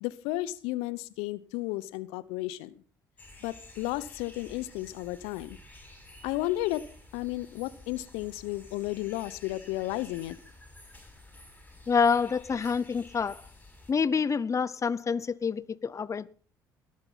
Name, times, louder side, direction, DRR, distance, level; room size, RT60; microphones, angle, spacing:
voice 1, 0.0-2.7 3.4-5.6 6.2-6.9 7.1-10.4, left 17 dB, 70° left, 0.9 m, -33 dB
sound 1, 3.2-13.9, left 2 dB, 15° left, 7.2 m, -51 dB
voice 2, 11.9-13.5 13.9-16.3, left 5 dB, 30° left, 0.8 m, -27 dB
19.0 x 9.8 x 5.8 m
hypercardioid pair, 55°, 11 cm